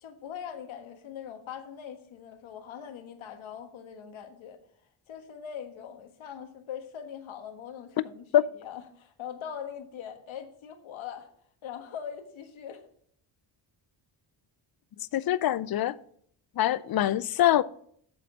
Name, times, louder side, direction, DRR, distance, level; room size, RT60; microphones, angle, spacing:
voice 1, 0.0-4.6 5.1-8.3 8.5-11.3 11.6-12.9, left 8 dB, 75° left, 1.6 m, -41 dB
voice 2, 15.1-16.0 16.6-17.6, left 12 dB, 50° left, 0.5 m, -24 dB
7.8 x 7.1 x 6.2 m
cardioid pair, 90°, 47 cm